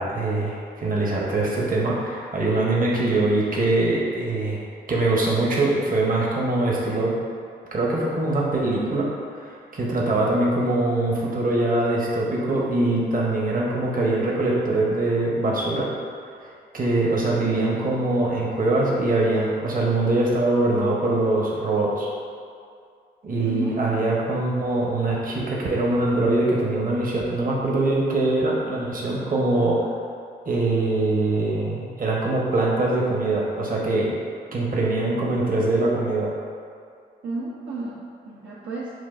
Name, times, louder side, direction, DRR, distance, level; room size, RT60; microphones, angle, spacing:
voice 1, 0.0-4.6 4.9-7.1 7.7-9.1 9.4-15.9 16.7-22.1 23.2-29.8 30.5-34.1 34.5-36.3, right 2 dB, 40° right, -4 dB, 0.9 m, -23 dB
voice 2, 23.4-24.1 37.2-38.9, right 2 dB, 70° right, -7 dB, 0.6 m, -31 dB
6.0 x 2.4 x 2.5 m, 2.3 s
supercardioid pair, 45°, 21 cm